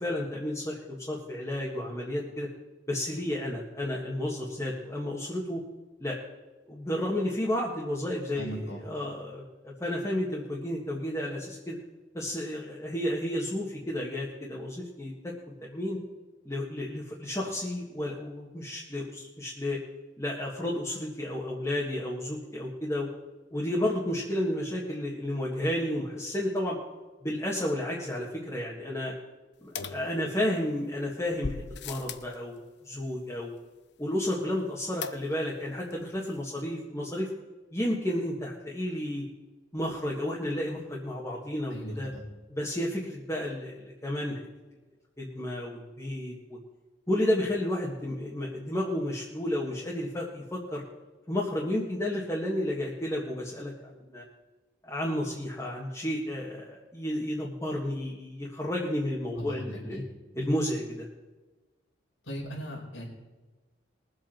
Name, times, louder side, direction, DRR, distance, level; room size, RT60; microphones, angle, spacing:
voice 1, 0.0-2.5 2.9-5.6 6.0-6.2 6.7-11.8 12.1-15.3 15.6-16.0 16.4-19.8 20.2-23.1 23.5-26.8 27.2-29.1 29.6-31.6 31.8-33.5 34.0-37.3 37.7-39.2 39.7-42.1 42.5-44.4 45.2-46.6 47.1-50.8 51.3-54.2 54.8-60.0 60.3-61.1, left 1 dB, 15° left, -5 dB, 1.7 m, -32 dB
voice 2, 8.3-8.8 41.7-42.3 59.3-60.0 62.3-63.1, equal, 85° left, -3 dB, 4.8 m, -38 dB
sound 1, 29.8-30.7 31.4-32.4 35.0-35.6 35.9-36.0 36.2-36.3, left 5 dB, 60° left, 0.7 m, -38 dB
22.0 x 8.0 x 4.5 m, 1.2 s
head